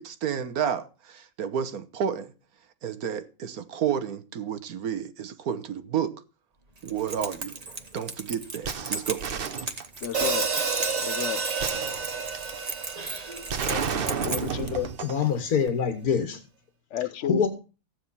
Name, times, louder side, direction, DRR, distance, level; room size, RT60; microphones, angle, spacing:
voice 1, 0.0-2.3 2.8-6.1 6.8-7.5 7.9-9.2, right 8 dB, 85° right, 1.6 m, -30 dB
Keys jangling, 6.8-14.7, right 3 dB, 30° right, 1.2 m, -36 dB
sound 1, 8.6-10.2 11.6-12.6 13.5-15.3 15.7-15.8, right 6 dB, 45° right, 0.9 m, -32 dB
voice 2, 10.0-10.5 11.0-11.4 13.6-14.9 16.9-17.5, left 11 dB, 55° left, 1.2 m, -32 dB
Hi-hat, 10.1-14.3, right 5 dB, 65° right, 1.9 m, -30 dB
voice 3, 15.0-16.4 17.2-17.5, left 7 dB, 85° left, 1.9 m, -25 dB
15.0 x 8.9 x 5.6 m
omnidirectional pair, 1.5 m